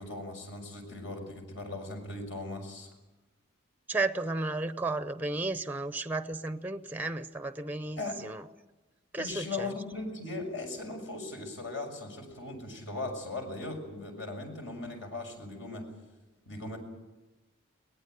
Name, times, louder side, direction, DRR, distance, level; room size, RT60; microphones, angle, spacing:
voice 1, 0.0-2.9 8.0-8.2 9.2-15.9 16.4-16.8, left 2 dB, 65° left, 4 dB, 6.4 m, -38 dB
voice 2, 3.9-8.4 9.1-9.7, right 2 dB, 10° right, 11 dB, 0.7 m, -33 dB
22.5 x 19.0 x 9.4 m, 1.1 s
head